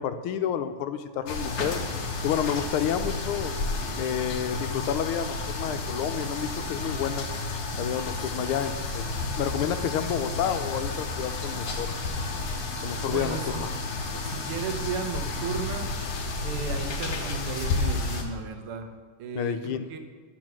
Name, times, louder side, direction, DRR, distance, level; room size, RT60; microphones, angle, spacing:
voice 1, 0.0-1.8 2.2-3.5 4.0-7.3 7.8-9.1 9.4-12.0 12.8-13.7 19.3-19.9, left 9 dB, 80° left, 9 dB, 1.5 m, -30 dB
sound 1, 1.3-18.2, left 3 dB, 55° left, 1.3 m, -31 dB
voice 2, 13.1-13.7 14.2-15.9 16.4-18.9 19.2-20.0, right 6 dB, 90° right, 6 dB, 1.8 m, -35 dB
10.5 x 4.5 x 6.1 m, 1.5 s
omnidirectional pair, 2.4 m